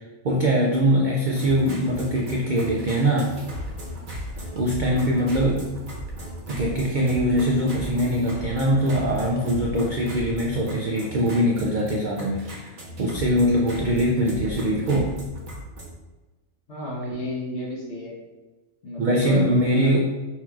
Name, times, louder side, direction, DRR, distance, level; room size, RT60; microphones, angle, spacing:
voice 1, 0.2-3.3 4.6-5.6 6.5-12.7 13.0-15.1 19.0-20.0, equal, 75° right, -2 dB, 0.4 m, -22 dB
sound 1, 1.2-15.9, equal, 45° right, 0.8 m, -36 dB
voice 2, 16.7-18.1 18.8-20.0, left 1 dB, 55° left, -4 dB, 1.3 m, -32 dB
5.6 x 3.0 x 2.3 m, 1.2 s
omnidirectional pair, 1.4 m